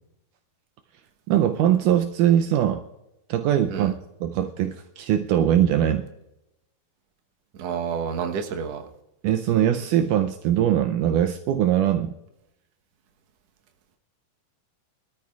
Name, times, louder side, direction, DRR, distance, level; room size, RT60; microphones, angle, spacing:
voice 1, 1.3-2.8 3.3-3.9 4.2-6.1 9.2-12.1, right 10 dB, 85° right, 7 dB, 1.8 m, -21 dB
voice 2, 7.6-8.8, right 7 dB, 65° right, 3 dB, 1.7 m, -29 dB
24.5 x 13.0 x 2.4 m, 0.88 s
omnidirectional pair, 4.3 m